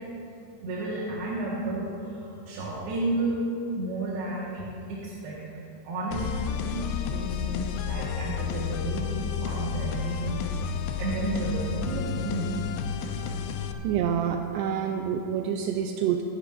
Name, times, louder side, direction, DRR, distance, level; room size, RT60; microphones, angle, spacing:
voice 1, 0.6-3.4 3.8-5.6 5.8-10.4 10.8-12.6 15.4-15.6, right 2 dB, 65° right, -7 dB, 3.2 m, -32 dB
sound 1, 6.1-13.7, left 8 dB, 80° left, 3.0 m, -31 dB
voice 2, 13.8-16.2, right 8 dB, 90° right, 4 dB, 2.4 m, -27 dB
25.5 x 10.0 x 2.5 m, 2.6 s
omnidirectional pair, 5.5 m